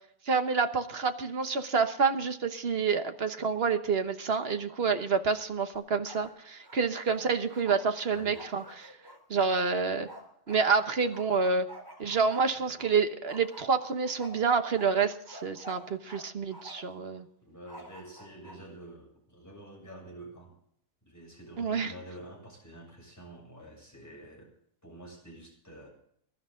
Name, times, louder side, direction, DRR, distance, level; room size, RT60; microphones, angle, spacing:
voice 1, 0.3-8.9 9.3-10.1 10.5-11.7 12.0-17.3 21.6-21.9, right 5 dB, 45° right, 8 dB, 1.3 m, -28 dB
Bark, 5.7-6.3 6.6-10.6 11.1-12.9 13.3-16.2 16.5-17.0 17.7-18.6, equal, 15° right, 3.5 m, -48 dB
voice 2, 8.1-8.5 12.1-12.3 12.5-12.8 17.4-20.6 21.0-24.5 24.8-25.9, right 1 dB, 10° left, -1 dB, 6.9 m, -48 dB
22.0 x 12.0 x 3.8 m, 0.69 s
omnidirectional pair, 1.6 m